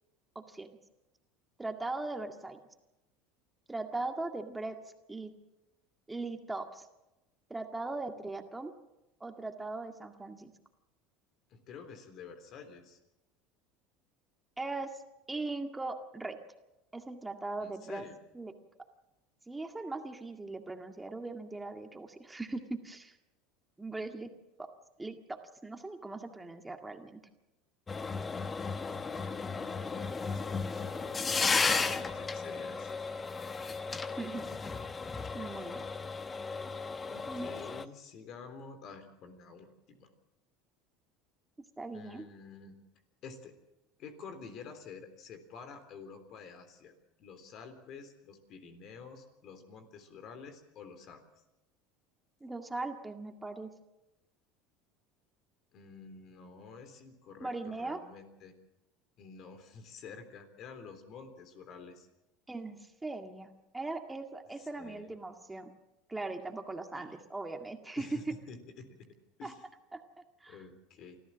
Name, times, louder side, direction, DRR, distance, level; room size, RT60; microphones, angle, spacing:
voice 1, 0.4-0.7 1.6-2.6 3.7-4.8 5.1-5.3 6.1-6.9 7.5-8.7 9.2-10.5 14.6-15.0 15.3-16.4 16.9-18.1 18.3-18.5 19.5-23.2 23.8-24.3 24.6-24.7 25.0-27.2 34.2-34.5 35.3-35.9 37.3-37.5 41.8-42.2 52.4-53.7 57.4-58.0 62.5-65.7 66.1-68.4 69.4-69.5 69.9-70.0 70.4-70.6, right 3 dB, 10° right, 5 dB, 1.9 m, -39 dB
voice 2, 11.5-13.0 17.6-18.1 29.1-32.9 37.1-40.1 41.9-42.8 43.2-43.5 44.0-46.9 47.2-51.4 55.7-58.6 59.2-62.1 64.6-65.1 67.0-67.1 68.0-69.6 70.5-71.2, left 5 dB, 55° left, 9 dB, 3.5 m, -49 dB
sound 1, 27.9-37.8, left 4 dB, 25° left, 1.2 m, -34 dB
25.0 x 14.5 x 7.4 m, 0.96 s
hypercardioid pair, 85°, 0 cm